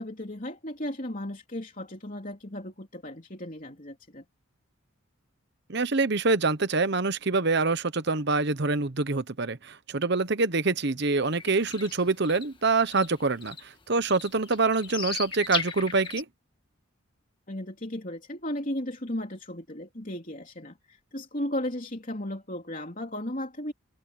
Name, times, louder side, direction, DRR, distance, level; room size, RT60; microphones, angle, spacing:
voice 1, 0.0-4.2 17.5-23.7, left 1 dB, 40° left, 3.4 m, -35 dB
voice 2, 5.7-16.3, right 3 dB, 55° right, 1.0 m, -25 dB
sound 1, 11.3-12.5 12.8-13.6 14.1-16.2, left 5 dB, 25° left, 1.7 m, -36 dB
head